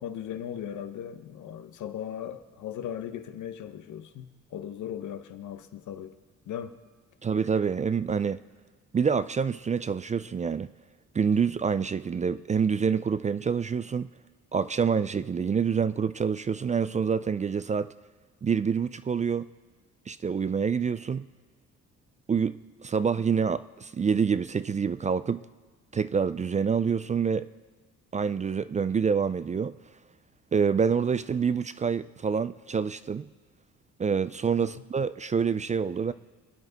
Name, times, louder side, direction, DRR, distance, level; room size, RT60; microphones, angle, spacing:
voice 1, 0.0-6.2 6.5-6.8 34.6-34.7, left 9 dB, 75° left, 1.0 m, -38 dB
voice 2, 7.2-8.4 8.9-10.7 11.1-14.1 14.5-17.9 18.4-19.5 20.1-21.2 22.3-25.4 25.9-27.5 28.1-29.8 30.5-33.3 34.0-36.1, right 6 dB, 25° right, 0.3 m, -27 dB
26.0 x 9.6 x 4.0 m
cardioid pair, 90°, 30 cm